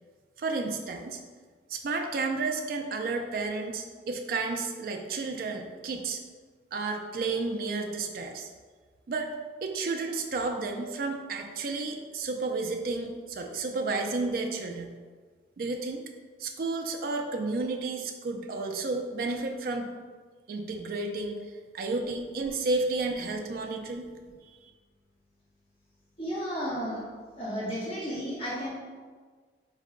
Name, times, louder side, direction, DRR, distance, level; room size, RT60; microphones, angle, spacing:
voice 1, 0.4-1.2 1.7-6.2 6.7-8.5 9.1-9.3 9.6-15.0 15.6-16.0 16.4-19.9 20.5-21.4 21.7-24.1 24.6-24.7, right 3 dB, 55° right, 3 dB, 0.3 m, -32 dB
voice 2, 26.2-27.0 27.4-28.7, equal, 35° left, -10 dB, 1.1 m, -33 dB
4.7 x 2.1 x 3.6 m, 1.5 s
head